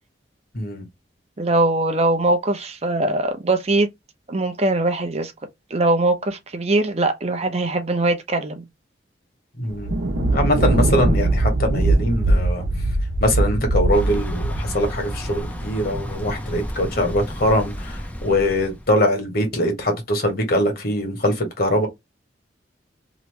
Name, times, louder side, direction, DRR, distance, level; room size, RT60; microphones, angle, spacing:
voice 1, 0.5-0.8 9.6-9.9 10.3-12.6 13.2-21.9, left 1 dB, 55° left, 1.5 m, -22 dB
voice 2, 1.4-3.9 4.3-5.3 5.7-8.6, right 2 dB, 35° right, 0.6 m, -21 dB
Thunder, 9.7-16.3, right 2 dB, 85° right, 0.8 m, -21 dB
Thunder / Bicycle, 13.9-19.0, equal, 10° left, 0.5 m, -32 dB
3.0 x 2.6 x 3.2 m
head